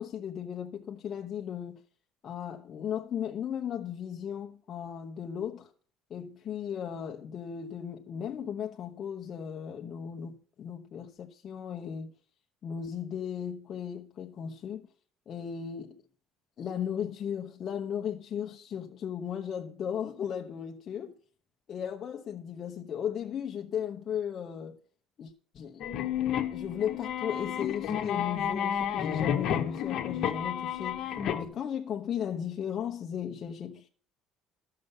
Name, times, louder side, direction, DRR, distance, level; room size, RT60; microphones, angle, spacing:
voice 1, 0.0-1.8 2.2-5.7 6.1-12.1 12.6-14.9 15.3-16.0 16.6-21.1 21.7-24.8 25.2-25.9 26.5-33.9, left 8 dB, 35° left, 1.0 m, -36 dB
sound 1, 25.8-31.4, left 9 dB, 50° left, 1.3 m, -31 dB
12.5 x 6.7 x 6.7 m
cardioid pair, 160°, 0 cm